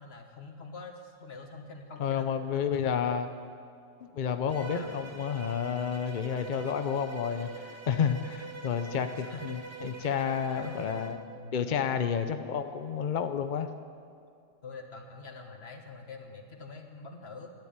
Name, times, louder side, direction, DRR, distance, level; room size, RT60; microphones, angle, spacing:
voice 1, 0.0-3.3 4.7-4.9 6.4-6.6 9.2-9.6 10.6-11.0 11.4-11.7 14.6-17.5, left 3 dB, 40° left, 4 dB, 1.6 m, -45 dB
voice 2, 2.0-3.3 4.0-11.2 11.5-13.7, left 7 dB, 65° left, 8 dB, 0.4 m, -30 dB
Bowed string instrument, 4.5-11.2, right 4 dB, 25° right, 0.7 m, -44 dB
13.0 x 10.5 x 8.8 m, 2.5 s
omnidirectional pair, 1.7 m